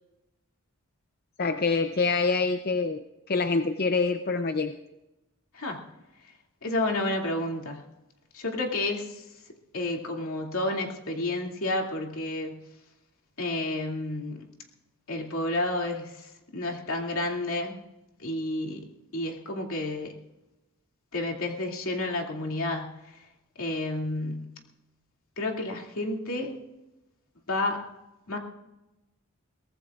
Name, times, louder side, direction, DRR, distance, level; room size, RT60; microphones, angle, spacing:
voice 1, 1.4-4.7, left 4 dB, 45° left, 7 dB, 0.6 m, -26 dB
voice 2, 6.6-7.8 8.3-9.2 9.7-12.7 13.4-14.4 15.1-17.8 18.2-18.9 19.1-20.1 21.1-23.2 23.6-24.5 25.4-26.6 27.5-27.8 28.3-28.4, left 2 dB, 75° left, 0 dB, 2.6 m, -30 dB
23.0 x 18.5 x 2.5 m, 0.98 s
head